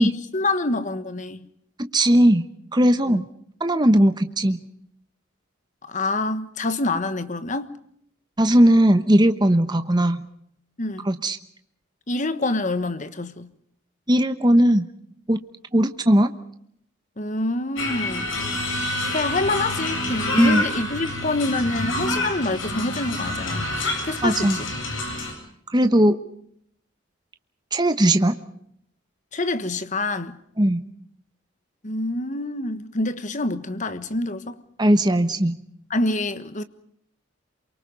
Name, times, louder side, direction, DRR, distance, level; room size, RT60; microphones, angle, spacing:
voice 1, 0.0-1.5 3.1-3.2 5.8-7.7 10.8-11.1 12.1-13.5 17.2-18.3 19.0-23.7 24.0-24.7 25.8-26.1 29.3-30.4 31.8-34.6 35.9-36.6, left 2 dB, 35° left, 1.4 m, -26 dB
voice 2, 1.8-2.4 2.7-3.3 3.6-4.6 8.4-10.2 11.1-11.4 14.1-14.9 15.3-15.4 15.7-16.3 20.4-20.6 24.2-24.6 25.7-26.2 27.7-28.4 30.6-30.8 34.8-35.6, right 1 dB, 20° right, 1.1 m, -18 dB
sound 1, 17.8-25.3, left 1 dB, 70° left, 7.9 m, -27 dB
28.0 x 24.0 x 5.4 m
head